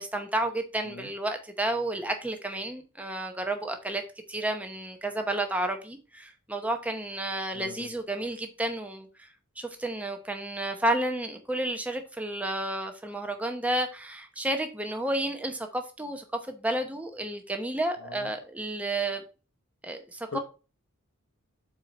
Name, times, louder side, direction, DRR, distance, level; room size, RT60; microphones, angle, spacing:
voice 1, 0.0-4.0 4.3-9.3 9.6-19.2 19.8-20.3, right 1 dB, 5° right, 0.8 m, -31 dB
voice 2, 7.5-7.9 18.0-18.3 20.3-20.4, left 4 dB, 65° left, 0.8 m, -40 dB
4.4 x 4.4 x 5.2 m
head